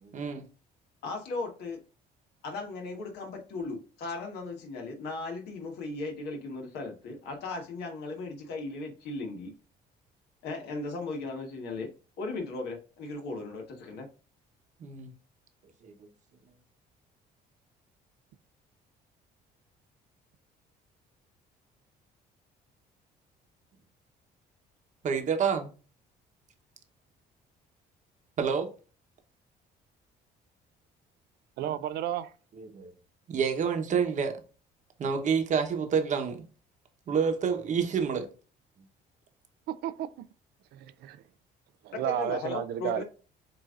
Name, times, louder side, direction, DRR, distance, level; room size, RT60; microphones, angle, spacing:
voice 1, 0.0-0.4 14.8-15.1 15.8-15.9 25.0-25.7 28.4-28.7 31.6-31.7 32.6-32.9 33.3-34.4 35.0-36.4 37.1-38.3, right 6 dB, 45° right, 1.0 m, -28 dB
voice 2, 1.0-1.8 2.4-9.5 10.4-11.9 12.2-14.1 42.0-43.0, left 3 dB, 75° left, 1.5 m, -37 dB
voice 3, 31.6-32.3 39.7-40.1 40.7-41.2 41.8-43.0, right 12 dB, 70° right, 0.4 m, -32 dB
7.6 x 2.7 x 2.5 m
cardioid pair, 110°, 17 cm